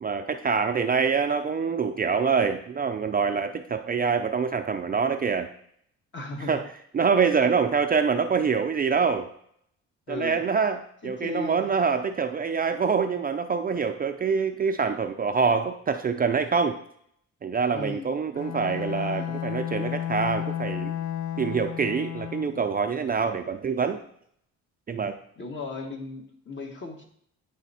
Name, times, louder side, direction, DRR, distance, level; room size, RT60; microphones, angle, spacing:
voice 1, 0.0-5.5 6.5-6.7 6.9-9.3 10.1-16.8 17.4-20.9 21.4-24.0 24.9-25.1, right 5 dB, 30° right, 6 dB, 0.4 m, -25 dB
voice 2, 6.1-6.6 10.1-10.4 11.0-11.6 17.7-18.1 25.4-27.0, left 2 dB, 40° left, 2 dB, 1.4 m, -36 dB
Bowed string instrument, 18.3-22.7, left 11 dB, 75° left, 0.5 m, -32 dB
9.1 x 3.4 x 4.2 m, 0.67 s
cardioid pair, 90°, 30 cm